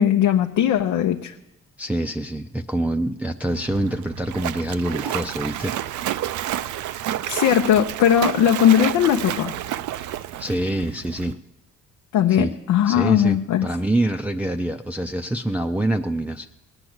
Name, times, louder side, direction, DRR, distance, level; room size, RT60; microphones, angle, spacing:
voice 1, 0.0-1.3 7.3-9.5 12.1-13.7, left 10 dB, 80° left, 4 dB, 0.7 m, -19 dB
voice 2, 1.8-5.7 10.4-11.4 12.3-12.5 12.9-16.5, right 1 dB, 5° right, 3 dB, 0.5 m, -25 dB
Splash splatter, 3.4-11.3, right 12 dB, 75° right, 0.6 m, -30 dB
18.5 x 8.9 x 7.9 m, 0.96 s
cardioid pair, 90°, 30 cm